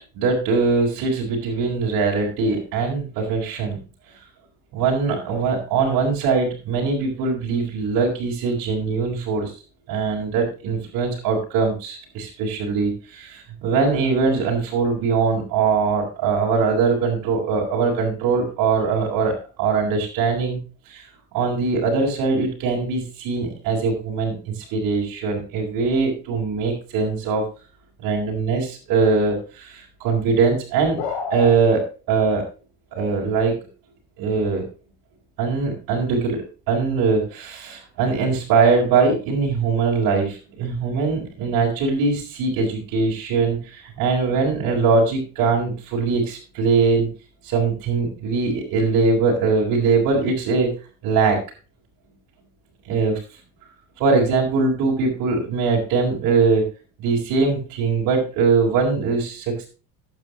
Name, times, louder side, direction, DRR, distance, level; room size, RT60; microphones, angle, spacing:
voice 1, 0.1-3.8 4.7-9.5 9.9-20.6 20.9-21.0 21.3-27.4 28.0-31.0 31.3-32.4 32.9-33.5 34.2-34.6 35.4-36.4 36.7-47.1 47.4-50.7 51.0-51.4 52.8-53.2 54.0-56.6 57.0-59.7, right 4 dB, 65° right, -3 dB, 4.5 m, -21 dB
sound 1, 31.0-31.5, left 6 dB, 80° left, 3.9 m, -27 dB
12.5 x 9.3 x 3.0 m, 0.33 s
supercardioid pair, 100°, 36 cm